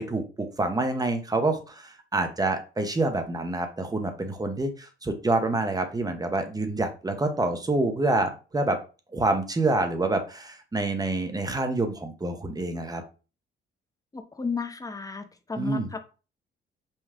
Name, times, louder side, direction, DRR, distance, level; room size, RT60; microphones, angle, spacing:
voice 1, 0.0-8.8 9.1-13.0 15.6-15.9, right 2 dB, 20° right, 6 dB, 0.8 m, -27 dB
voice 2, 14.1-15.2 15.5-16.0, left 4 dB, 15° left, 7 dB, 0.7 m, -33 dB
5.4 x 2.3 x 3.6 m, 0.34 s
cardioid pair, 90°, 20 cm